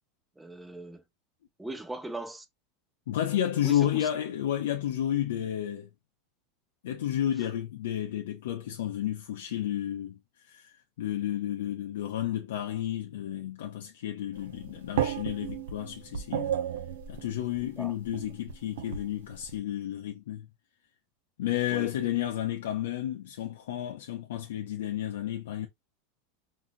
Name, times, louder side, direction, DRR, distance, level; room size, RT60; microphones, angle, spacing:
voice 1, 0.4-1.0 1.6-2.5 3.6-4.1 17.8-17.9 21.7-21.9, right 2 dB, 5° right, 0.4 m, -39 dB
voice 2, 3.1-5.9 6.8-10.2 10.4-16.5 17.1-20.5 21.4-25.7, left 11 dB, 90° left, 0.5 m, -31 dB
sound 1, 14.4-19.6, right 9 dB, 90° right, 0.6 m, -34 dB
3.8 x 2.7 x 2.6 m
supercardioid pair, 150°, 0 cm